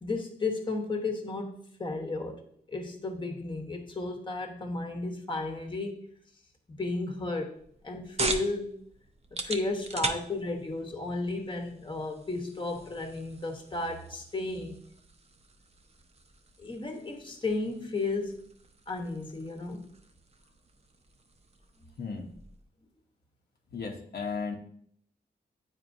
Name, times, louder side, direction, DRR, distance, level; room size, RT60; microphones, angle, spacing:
voice 1, 0.0-2.4 2.7-6.0 6.7-7.5 7.8-8.7 9.4-14.8 16.6-18.4 18.9-19.9, left 3 dB, 25° left, 3 dB, 1.1 m, -33 dB
sound 1, 7.5-22.7, right 3 dB, 35° right, 0.7 m, -41 dB
voice 2, 22.0-22.3 23.7-24.6, left 5 dB, 65° left, 1 dB, 0.9 m, -35 dB
9.1 x 4.3 x 2.6 m, 0.64 s
cardioid pair, 85°, 18 cm